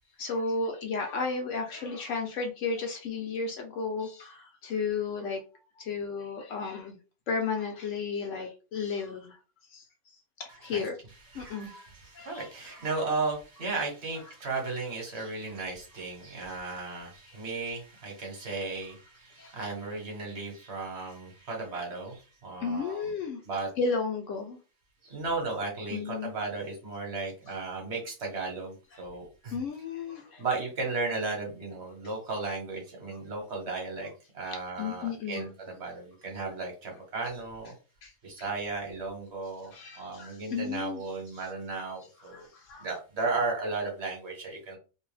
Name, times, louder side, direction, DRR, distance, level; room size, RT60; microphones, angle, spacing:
voice 1, 0.2-5.4 5.8-7.0 7.3-9.4 9.7-9.8 10.4-10.9 11.3-11.7 12.1-12.5 17.3-17.4 19.4-19.5 22.6-23.4 23.8-24.6 25.9-26.3 29.5-30.4 34.4-35.5 38.0-38.1 39.7-41.0 42.3-42.9, left 4 dB, 70° left, 3 dB, 0.8 m, -33 dB
voice 2, 10.5-23.1 23.4-24.0 25.0-29.6 30.4-34.1 34.3-37.7 38.2-42.5 42.8-44.8, right 3 dB, 55° right, 1 dB, 1.1 m, -35 dB
2.6 x 2.2 x 3.1 m, 0.34 s
omnidirectional pair, 1.5 m